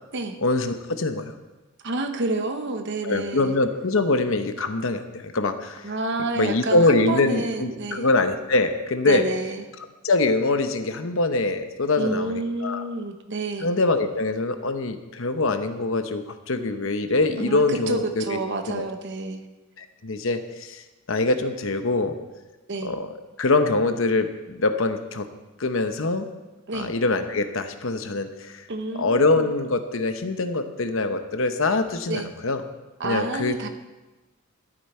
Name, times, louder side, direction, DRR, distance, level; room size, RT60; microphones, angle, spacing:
voice 1, 0.4-1.3 3.0-5.9 6.4-9.3 10.0-12.9 13.6-18.4 18.7-18.8 19.8-20.8 21.1-22.1 22.8-25.3 25.6-26.3 26.7-28.7 29.0-32.6 33.0-33.7, left 2 dB, 65° left, 8 dB, 0.9 m, -24 dB
voice 2, 1.8-3.6 5.8-8.1 9.1-9.6 12.0-13.7 17.4-19.4 22.7-22.9 26.7-26.9 28.7-29.5 32.1-32.3 33.0-33.7, right 2 dB, 55° right, 7 dB, 1.1 m, -29 dB
12.0 x 10.5 x 4.4 m, 1.1 s
head